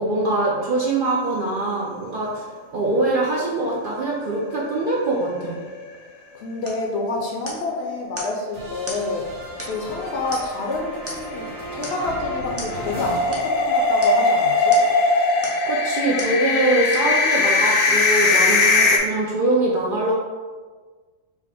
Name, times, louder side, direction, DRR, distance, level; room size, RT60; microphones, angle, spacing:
voice 1, 0.0-5.6 15.7-20.1, right 2 dB, 60° right, -4 dB, 0.6 m, -23 dB
sound 1, 4.0-5.0 5.3-5.4 5.7-5.8 10.0-19.0, left 3 dB, 85° left, 1.0 m, -20 dB
voice 2, 6.3-14.8, left 3 dB, 65° left, 0 dB, 0.7 m, -28 dB
sound 2, 6.6-6.9 7.5-7.7 8.2-8.4 8.9-9.1 9.6-9.9 10.3-10.7 11.1-11.4 11.8-12.1 12.6-12.8 13.3-13.5 14.0-14.2 14.7-15.0 15.4-15.7 16.2-16.4 16.9-17.1 17.7-17.8, equal, 15° right, 0.6 m, -36 dB
sound 3, 8.5-14.0 14.3-16.6, right 1 dB, 80° right, 1.6 m, -36 dB
4.8 x 2.1 x 4.1 m, 1.4 s
omnidirectional pair, 1.4 m